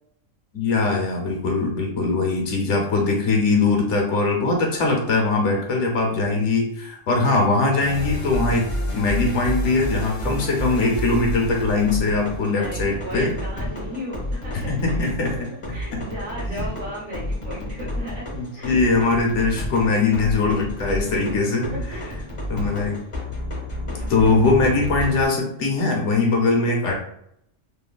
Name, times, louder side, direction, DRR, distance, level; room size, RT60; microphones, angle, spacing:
voice 1, 0.5-8.7 8.9-13.3 14.5-15.3 15.9-16.0 16.5-16.7 18.4-21.7 22.5-23.0 24.1-26.9, left 3 dB, 70° left, 1 dB, 1.0 m, -21 dB
sound 1, 7.8-25.3, equal, 30° left, 0.6 m, -30 dB
voice 2, 12.5-18.8 20.4-20.5 21.1-22.2 23.9-24.4 26.4-26.7, equal, 70° right, -5 dB, 1.1 m, -37 dB
3.1 x 2.2 x 2.2 m, 0.71 s
omnidirectional pair, 1.3 m